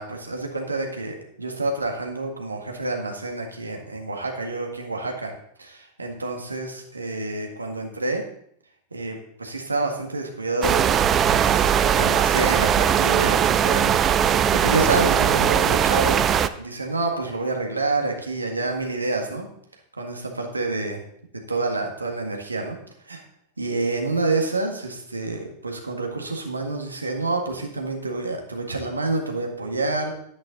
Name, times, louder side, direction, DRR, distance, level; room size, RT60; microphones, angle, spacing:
voice 1, 0.0-5.3 5.6-8.2 8.9-10.8 11.3-14.0 14.6-16.2 16.6-19.5 20.0-21.0 21.5-22.8 23.0-23.2 23.6-30.1, right 2 dB, 80° right, 2 dB, 1.8 m, -28 dB
sound 1, 10.6-16.5, right 9 dB, 25° right, 0.5 m, -19 dB
11.5 x 9.6 x 3.9 m, 0.70 s
figure-of-eight pair, 90°, 0 cm